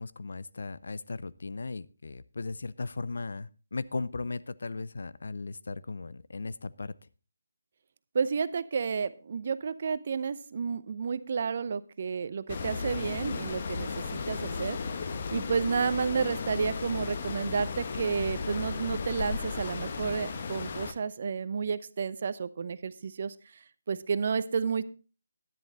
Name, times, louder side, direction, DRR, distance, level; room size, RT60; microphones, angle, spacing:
voice 1, 0.0-6.9, left 3 dB, 65° left, 18 dB, 0.5 m, -37 dB
voice 2, 8.1-14.8 15.3-23.3 23.9-24.8, right 6 dB, 45° right, 15 dB, 0.7 m, -31 dB
sound 1, 12.5-20.9, left 5 dB, 40° left, 1.1 m, -35 dB
10.5 x 10.5 x 3.9 m, 0.34 s
figure-of-eight pair, 155°, 0 cm